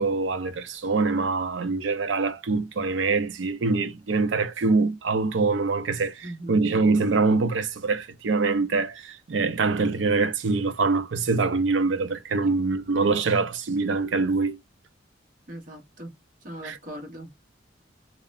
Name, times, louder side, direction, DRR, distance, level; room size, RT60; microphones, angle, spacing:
voice 1, 0.0-14.6 16.6-16.8, right 4 dB, 75° right, 0.5 m, -24 dB
voice 2, 6.2-6.6 12.4-12.6 15.5-16.2 16.4-17.3, right 1 dB, 45° right, 1.0 m, -40 dB
2.8 x 2.1 x 2.4 m
head